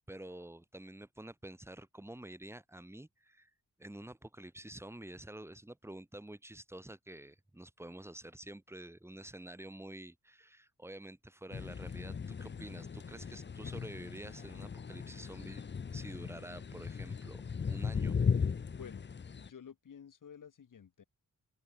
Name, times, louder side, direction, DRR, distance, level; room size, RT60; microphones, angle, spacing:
voice 1, 0.1-3.5 3.8-15.6 15.9-18.2, right 1 dB, 5° right, 2.6 m, -49 dB
sound 1, 11.5-19.5, left 6 dB, 30° left, 0.8 m, -37 dB
voice 2, 18.7-19.1 19.4-21.0, left 7 dB, 65° left, 3.2 m, -52 dB
open air
wide cardioid pair, 170°, 35 cm